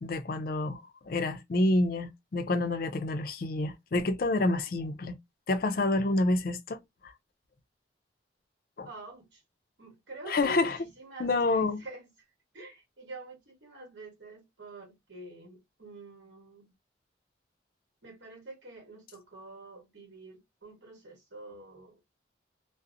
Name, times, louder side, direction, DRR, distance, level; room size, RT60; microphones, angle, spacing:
voice 1, 0.0-5.2 5.5-7.1 8.8-8.9 10.3-10.8 11.2-11.8, left 2 dB, 50° left, 0.4 m, -28 dB
voice 2, 8.8-9.4 9.8-12.1 12.5-16.7 18.0-22.0, right 2 dB, 70° right, 1.1 m, -47 dB
2.6 x 2.0 x 2.4 m
head